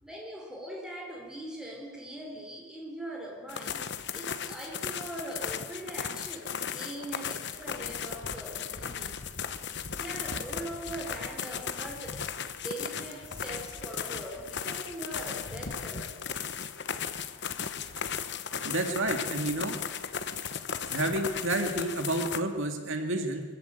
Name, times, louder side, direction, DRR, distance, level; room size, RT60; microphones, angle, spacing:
voice 1, 0.0-9.2 9.9-12.3 12.6-16.2, right 1 dB, 5° right, 4.3 m, -41 dB
sound 1, 3.5-22.4, left 7 dB, 50° left, 1.1 m, -36 dB
voice 2, 18.7-19.8 20.9-23.4, right 1 dB, 65° right, 2.2 m, -30 dB
24.0 x 15.0 x 9.1 m
head